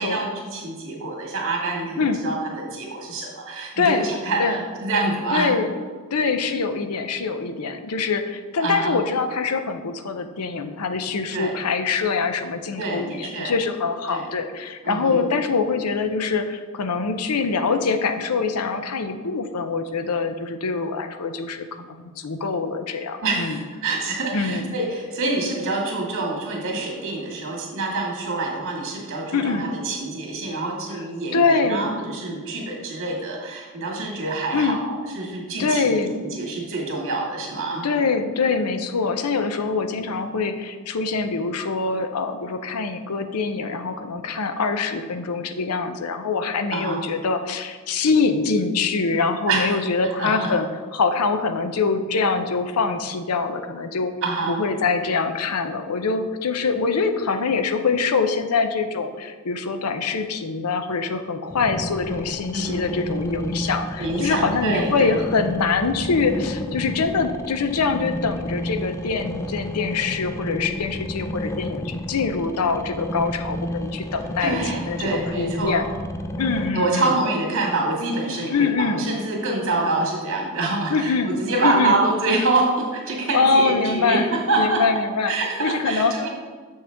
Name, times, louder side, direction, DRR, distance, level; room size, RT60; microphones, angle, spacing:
voice 1, 0.0-5.5 8.6-8.9 11.3-11.5 12.8-13.5 14.1-14.3 14.8-15.2 23.2-37.9 46.7-47.1 49.5-49.8 50.2-50.5 54.2-54.6 62.5-62.9 64.0-65.1 74.4-75.8 76.7-84.8 85.3-86.3, right 2 dB, 60° right, -2 dB, 2.0 m, -26 dB
voice 2, 2.0-2.3 3.8-4.1 4.4-4.6 5.3-5.7 6.1-23.6 24.3-24.7 29.3-29.7 31.3-32.0 34.5-34.8 35.6-36.2 37.8-54.1 54.5-75.1 75.3-75.9 76.4-77.1 78.5-79.1 80.9-81.3 81.6-82.0 83.3-84.3 84.6-85.3 85.6-86.1, left 4 dB, 85° left, 8 dB, 0.6 m, -24 dB
sound 1, 61.5-76.7, left 1 dB, 15° left, 0.4 m, -31 dB
7.2 x 6.3 x 3.5 m, 1.5 s
head